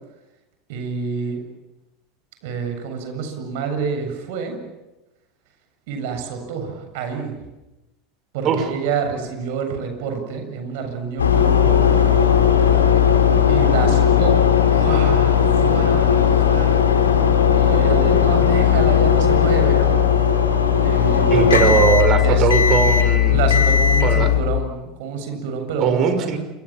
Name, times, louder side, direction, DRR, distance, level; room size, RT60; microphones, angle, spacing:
voice 1, 0.7-1.4 2.4-4.6 5.9-7.3 8.3-12.2 13.5-14.4 14.7-16.9 17.5-20.0 20.8-21.8 22.2-22.9 23.3-26.3, right 5 dB, 65° right, 6 dB, 7.7 m, -28 dB
sound 1, 11.2-24.4, left 8 dB, 90° left, 4.1 m, -16 dB
voice 2, 21.3-23.5 24.0-24.3 25.8-26.4, right 6 dB, 45° right, 9 dB, 5.5 m, -19 dB
28.0 x 25.5 x 7.6 m, 1.0 s
hypercardioid pair, 85°, 0 cm